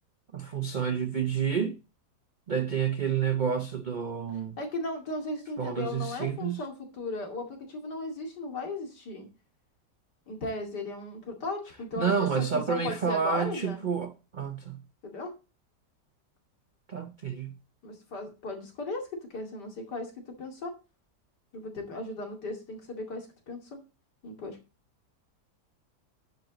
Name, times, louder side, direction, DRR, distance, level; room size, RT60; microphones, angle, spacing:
voice 1, 0.3-1.8 2.5-4.6 5.6-6.6 12.0-14.8 16.9-17.6, right 7 dB, 90° right, 0.4 m, -29 dB
voice 2, 4.6-9.3 10.3-13.8 15.0-15.3 17.8-20.1 20.4-20.7 21.5-23.8 24.2-24.6, left 2 dB, 80° left, 3.1 m, -36 dB
9.6 x 7.9 x 3.9 m
omnidirectional pair, 1.8 m